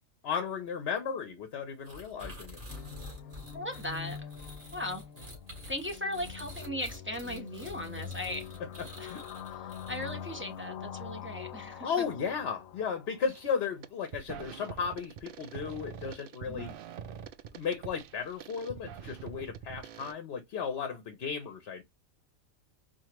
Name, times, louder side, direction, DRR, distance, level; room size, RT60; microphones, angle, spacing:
voice 1, 0.2-2.6 9.0-9.3 10.0-10.1 11.8-16.8 17.5-21.8, left 6 dB, 55° left, 0.8 m, -35 dB
sound 1, 1.8-10.3, left 1 dB, 40° right, 2.3 m, -48 dB
sound 2, 2.7-13.5, left 8 dB, 80° left, 1.0 m, -44 dB
voice 2, 3.5-4.2 4.7-5.1 5.7-8.5 9.0-9.1 9.6-11.9 16.5-16.7, left 1 dB, 15° right, 0.6 m, -37 dB
sound 3, 13.3-13.5 13.8-20.1, right 8 dB, 70° right, 0.5 m, -45 dB
4.7 x 2.5 x 2.9 m
omnidirectional pair, 1.4 m